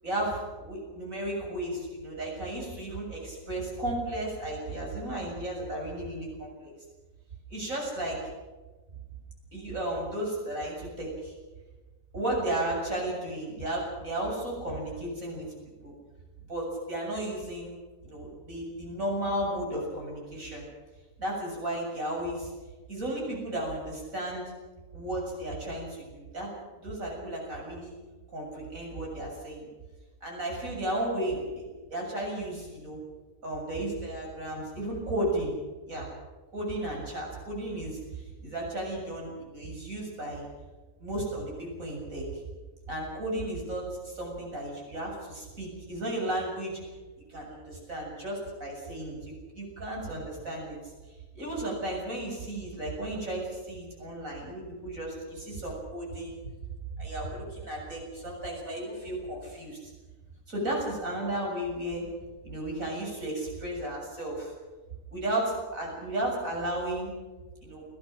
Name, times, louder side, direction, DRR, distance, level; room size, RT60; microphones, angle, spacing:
voice 1, 0.0-6.7 7.5-8.2 9.5-11.3 12.1-15.5 15.8-15.9 16.5-17.7 18.0-20.7 21.2-22.5 22.9-24.4 24.9-26.5 26.8-28.0 28.3-29.7 30.2-33.0 33.4-35.5 35.9-36.1 36.5-40.5 41.0-42.4 42.9-46.8 47.3-50.9 51.3-56.5 57.0-59.9 60.5-62.1 62.4-64.5 65.1-67.1 67.6-67.9, right 1 dB, 90° right, -1 dB, 7.7 m, -34 dB
30.0 x 15.0 x 6.5 m, 1.2 s
omnidirectional pair, 1.4 m